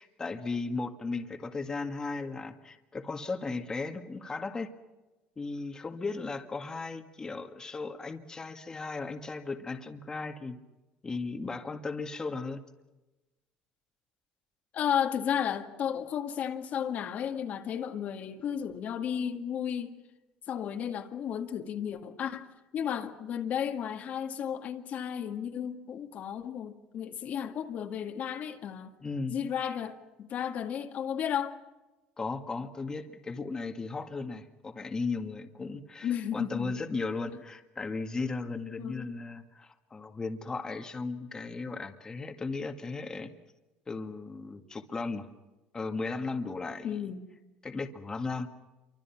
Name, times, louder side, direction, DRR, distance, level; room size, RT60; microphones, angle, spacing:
voice 1, 0.0-4.7 5.4-10.6 11.0-12.6 29.0-29.4 32.2-43.3 43.9-45.3 45.7-47.1 47.6-48.5, left 3 dB, 20° left, 2.0 m, -36 dB
voice 2, 14.7-20.0 20.5-29.0 29.3-31.6 36.0-36.7 38.8-39.1 46.8-47.3, left 8 dB, 50° left, 2.1 m, -33 dB
28.0 x 24.5 x 6.0 m
cardioid pair, 115°, 3 cm